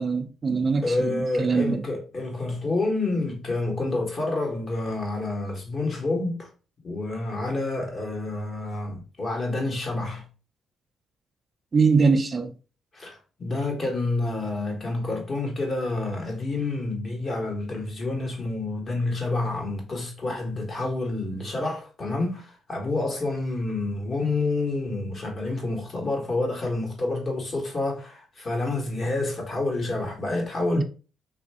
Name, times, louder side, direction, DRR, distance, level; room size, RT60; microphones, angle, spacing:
voice 1, 0.0-1.8 11.7-12.5, right 4 dB, 35° right, 0.4 m, -23 dB
voice 2, 0.8-6.5 6.8-10.2 12.9-30.8, left 2 dB, 40° left, 1.3 m, -28 dB
3.3 x 2.5 x 3.3 m
cardioid pair, 90°, 0 cm